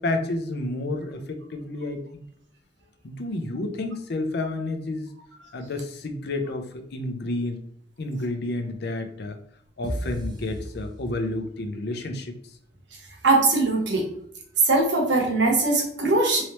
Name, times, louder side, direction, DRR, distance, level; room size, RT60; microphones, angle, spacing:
voice 1, 0.0-2.2 3.0-5.1 5.5-7.6 8.0-9.4 9.8-12.5, left 2 dB, 60° left, 6 dB, 0.5 m, -30 dB
sound 1, 9.8-11.7, equal, 25° right, 0.5 m, -34 dB
voice 2, 13.2-14.0 14.6-16.4, right 2 dB, 70° right, 1 dB, 0.9 m, -21 dB
3.1 x 2.8 x 2.9 m, 0.66 s
head